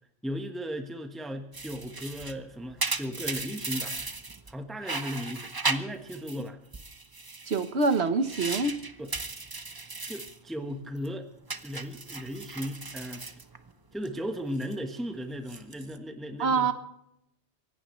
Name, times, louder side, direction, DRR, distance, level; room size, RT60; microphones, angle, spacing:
voice 1, 0.2-4.0 4.5-6.6 9.0-9.1 10.1-11.3 11.6-13.2 13.9-16.7, equal, ahead, 5 dB, 1.3 m, -36 dB
sound 1, 1.5-4.5 4.8-6.4 6.7-10.4 10.7-11.1 11.5-14.1 14.4-14.7 15.3-16.0, right 3 dB, 20° right, 0.8 m, -36 dB
voice 2, 7.5-8.8 16.4-16.7, right 4 dB, 65° right, 9 dB, 1.5 m, -25 dB
25.0 x 17.5 x 3.2 m, 0.78 s
omnidirectional pair, 1.2 m